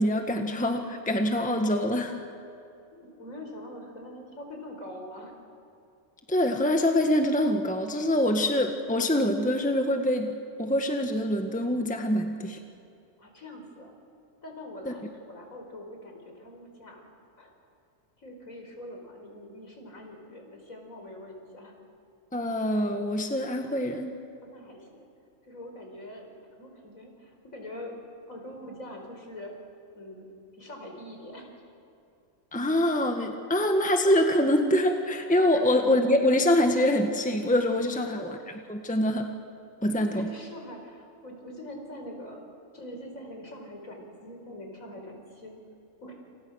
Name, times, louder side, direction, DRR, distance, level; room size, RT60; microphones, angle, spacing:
voice 1, 0.0-2.2 6.3-12.6 14.8-14.9 22.3-24.1 32.5-39.3 39.8-40.3, left 1 dB, 5° left, 4 dB, 1.5 m, -25 dB
voice 2, 2.9-5.4 13.2-13.9 14.4-17.0 17.4-17.6 18.2-21.8 24.4-25.1 25.4-26.3 26.6-27.9 28.3-29.5 29.9-30.3 30.5-31.5 35.5-35.6 37.9-38.2 40.0-42.4 42.7-45.5 46.0-46.1, left 1 dB, 80° left, 2 dB, 5.2 m, -43 dB
29.0 x 27.5 x 6.4 m, 2.5 s
omnidirectional pair, 1.4 m